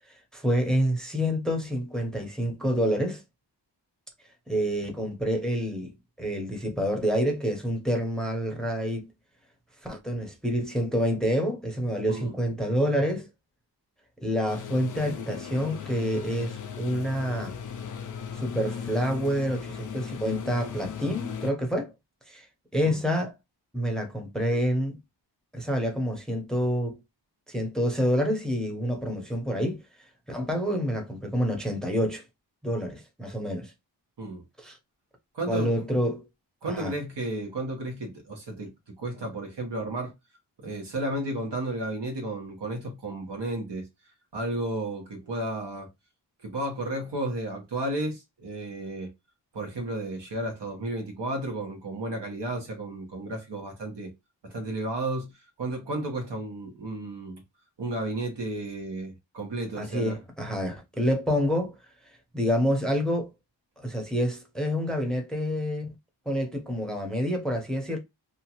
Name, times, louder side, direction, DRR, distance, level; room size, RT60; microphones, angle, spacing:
voice 1, 0.1-3.2 4.5-5.9 6.2-9.1 9.8-13.3 14.2-17.5 18.3-21.9 22.3-22.5 22.7-23.3 23.7-25.0 25.5-27.0 27.5-29.8 30.3-32.2 32.6-33.7 34.6-34.7 35.5-36.3 36.7-36.9 59.8-61.7 62.3-63.3 63.8-65.9 66.3-68.0, equal, ahead, 0.8 m, -27 dB
sound 1, 14.5-21.5, left 7 dB, 45° left, 0.4 m, -37 dB
voice 2, 35.3-35.7 36.6-40.1 40.6-43.9 44.3-45.9 46.4-49.1 49.5-54.1 54.4-57.4 57.8-60.2, right 2 dB, 65° right, 1.2 m, -33 dB
2.7 x 2.4 x 2.9 m
wide cardioid pair, 85°, 44 cm